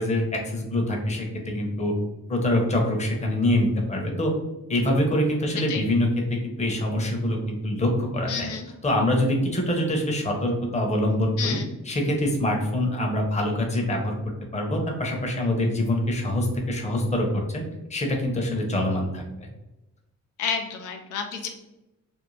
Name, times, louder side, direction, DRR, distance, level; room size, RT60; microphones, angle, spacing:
voice 1, 0.0-1.9 2.3-4.3 4.7-8.5 8.8-11.6 11.8-14.2 14.5-17.6 17.9-19.3, left 1 dB, 25° left, 1 dB, 0.7 m, -25 dB
voice 2, 5.5-5.8 8.3-8.7 11.4-11.7 20.4-21.5, left 6 dB, 90° left, 4 dB, 0.5 m, -30 dB
2.6 x 2.0 x 3.1 m, 1.0 s
cardioid pair, 90°, 30 cm